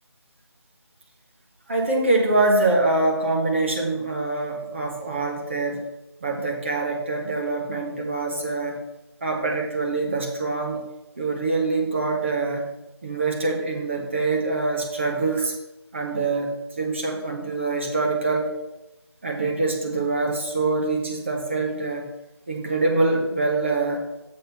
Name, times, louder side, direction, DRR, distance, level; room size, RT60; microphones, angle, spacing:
voice 1, 1.7-5.8 6.2-8.8 9.2-10.8 11.2-12.7 13.0-15.5 15.9-18.5 19.2-22.1 22.5-24.0, right 3 dB, 30° right, 0 dB, 1.3 m, -24 dB
6.7 x 6.4 x 5.5 m, 0.95 s
figure-of-eight pair, 165°, 14 cm